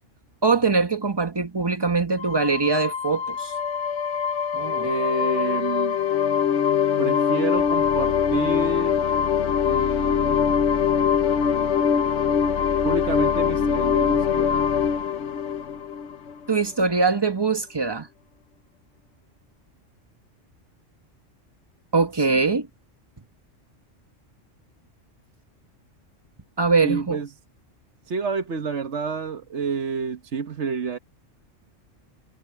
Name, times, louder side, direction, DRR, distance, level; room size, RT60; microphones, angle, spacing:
voice 1, 0.4-3.5 4.5-4.9 16.5-18.1 21.9-22.7 26.6-27.2, right 4 dB, 20° right, 1.2 m, -22 dB
sound 1, 2.2-16.6, left 7 dB, 60° left, 1.1 m, -23 dB
voice 2, 4.8-6.0 7.0-9.0 9.6-10.4 12.8-14.7 22.2-22.4 26.8-27.3 28.1-31.0, right 5 dB, 65° right, 1.4 m, -29 dB
omnidirectional pair, 1.3 m